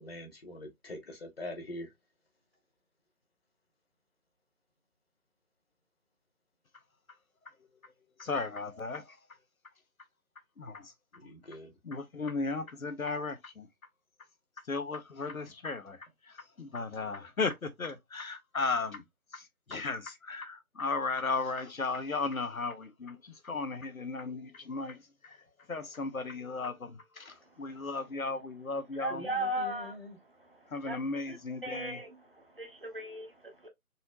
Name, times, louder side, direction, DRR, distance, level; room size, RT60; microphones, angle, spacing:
voice 1, 0.0-1.9 11.2-11.8 29.1-30.2, left 1 dB, 40° left, 1.3 m, -44 dB
voice 2, 7.4-7.9 8.2-9.4 10.6-10.9 11.8-13.7 14.6-19.0 19.3-29.2 30.7-32.0, left 3 dB, 70° left, 0.8 m, -36 dB
voice 3, 29.0-30.0 30.4-31.0 31.3-31.4 31.6-32.1 32.4-33.7, right 1 dB, 40° right, 0.9 m, -37 dB
4.1 x 2.9 x 2.5 m
figure-of-eight pair, 155°, 44 cm